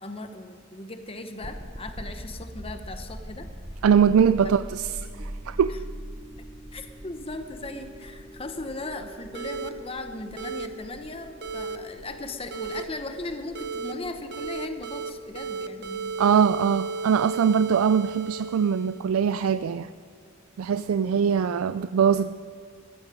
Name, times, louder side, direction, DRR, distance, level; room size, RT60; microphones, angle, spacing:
voice 1, 0.0-3.5 4.4-4.5 5.7-5.8 6.7-16.1, left 2 dB, 25° left, 7 dB, 0.9 m, -37 dB
sound 1, 1.4-18.3, equal, 10° right, 1.1 m, -43 dB
voice 2, 3.8-5.7 16.2-19.9 20.6-22.3, right 7 dB, 85° right, 13 dB, 0.4 m, -22 dB
sound 2, 9.3-9.7 10.4-10.7 11.4-11.8 12.5-12.8 13.5-13.9 14.3-15.1 15.3-19.1, right 4 dB, 50° right, 0.8 m, -34 dB
15.0 x 14.0 x 4.9 m, 2.3 s
head